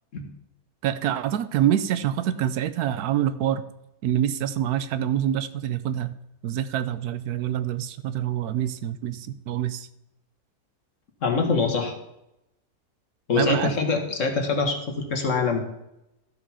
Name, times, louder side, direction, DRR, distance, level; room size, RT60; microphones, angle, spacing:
voice 1, 0.8-3.6 4.0-6.1 6.4-9.9 13.4-13.7, right 11 dB, 85° right, 13 dB, 1.2 m, -26 dB
voice 2, 11.2-11.9 13.3-15.6, left 4 dB, 55° left, 3 dB, 1.7 m, -24 dB
13.0 x 5.1 x 5.5 m, 0.86 s
omnidirectional pair, 1.6 m